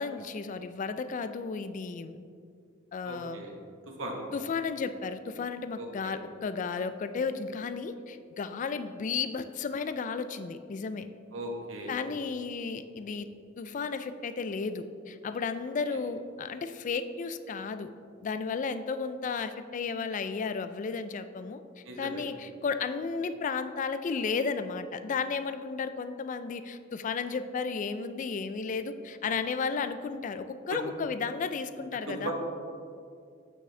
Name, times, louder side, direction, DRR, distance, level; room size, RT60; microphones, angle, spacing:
voice 1, 0.0-2.2 2.9-3.4 4.3-11.1 11.9-13.3 13.6-17.9 18.2-32.3, left 5 dB, 40° left, 11 dB, 0.3 m, -33 dB
voice 2, 3.0-3.5 4.0-4.2 5.7-6.1 11.3-11.9 15.9-16.0 21.8-22.2 30.7-30.8 32.1-32.3, right 2 dB, 75° right, 1 dB, 1.1 m, -37 dB
7.9 x 6.3 x 3.3 m, 2.3 s
head